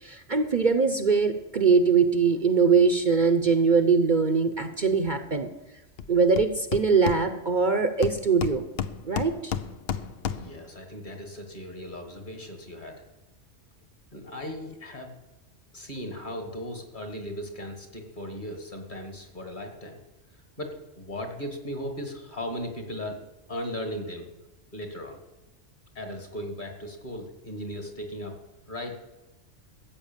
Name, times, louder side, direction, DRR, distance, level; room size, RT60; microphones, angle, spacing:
voice 1, 0.0-5.5 6.1-8.6 9.0-9.5, right 5 dB, 45° right, 8 dB, 0.9 m, -22 dB
Hammer, 6.0-6.1 6.4-7.6 8.0-10.7, left 8 dB, 60° left, 0.9 m, -32 dB
voice 2, 10.3-13.1 14.1-15.2 15.7-20.0 20.6-23.2 23.5-24.3 24.7-25.2 25.9-28.4 28.7-29.0, left 1 dB, 40° left, 4 dB, 2.3 m, -37 dB
14.0 x 8.4 x 7.3 m, 1.0 s
omnidirectional pair, 1.2 m